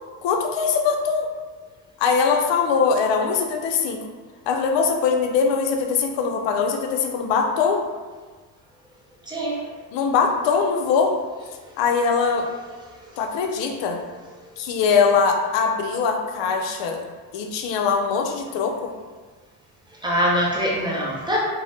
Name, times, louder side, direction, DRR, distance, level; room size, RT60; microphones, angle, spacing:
voice 1, 0.2-1.3 2.0-4.0 4.5-7.8 9.9-11.1 11.8-12.5 13.2-14.0 14.6-17.0 17.3-18.9, left 5 dB, 75° left, 3 dB, 0.6 m, -22 dB
voice 2, 9.2-9.7 11.7-11.8 12.9-13.3 14.4-14.5 19.9-21.4, equal, 10° right, -3 dB, 0.5 m, -25 dB
2.6 x 2.1 x 3.3 m, 1.4 s
cardioid pair, 105°, 45 cm